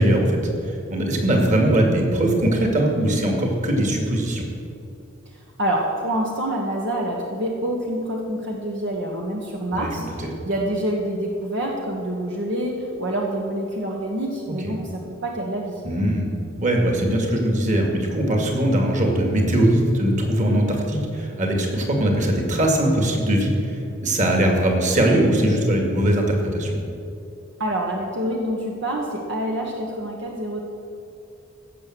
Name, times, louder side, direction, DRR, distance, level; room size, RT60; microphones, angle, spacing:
voice 1, 0.0-4.5 9.7-10.3 15.8-16.3 16.6-26.7, right 1 dB, 35° right, 1 dB, 2.2 m, -21 dB
voice 2, 5.3-15.8 27.6-30.6, right 1 dB, 60° right, -1 dB, 1.3 m, -27 dB
16.0 x 6.9 x 7.8 m, 2.7 s
head